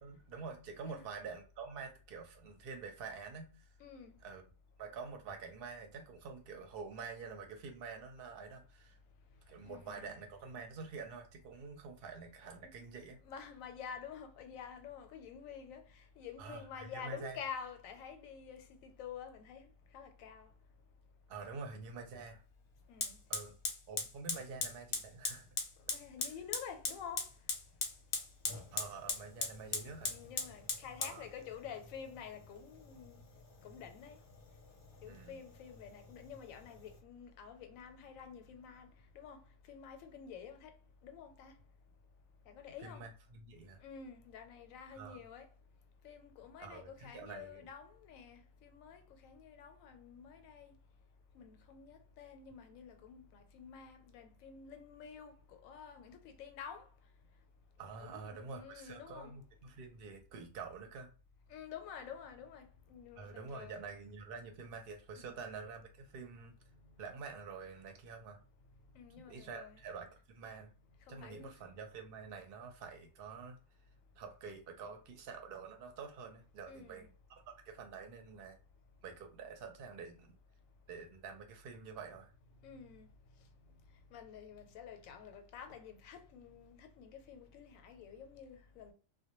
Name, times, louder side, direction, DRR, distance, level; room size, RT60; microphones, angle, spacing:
voice 1, 0.0-3.6 4.2-4.4 4.8-9.0 9.5-13.2 16.4-17.4 21.3-22.4 23.3-23.5 23.9-25.6 28.7-30.1 31.0-31.3 35.1-35.4 42.8-43.8 44.9-45.2 46.6-47.7 57.8-61.1 63.2-66.5 67.0-68.4 69.2-70.7 71.1-73.6 74.2-78.6 79.0-80.4 80.9-82.3, right 5 dB, 60° right, 0.7 m, -47 dB
voice 2, 3.8-4.2 9.7-10.2 13.2-19.7 19.9-20.5 22.9-23.2 25.9-27.2 30.0-33.2 33.6-34.2 35.0-38.9 39.1-39.4 39.7-40.7 41.0-41.6 42.5-43.0 43.8-45.5 46.0-50.7 51.3-56.9 58.0-59.4 61.5-63.9 65.2-65.5 68.9-69.8 71.1-71.5 76.7-77.1 82.6-83.1 84.1-88.9, left 7 dB, 90° left, 1.0 m, -49 dB
Fire, 23.0-37.0, left 4 dB, 55° left, 0.7 m, -42 dB
2.1 x 2.1 x 2.9 m
omnidirectional pair, 1.3 m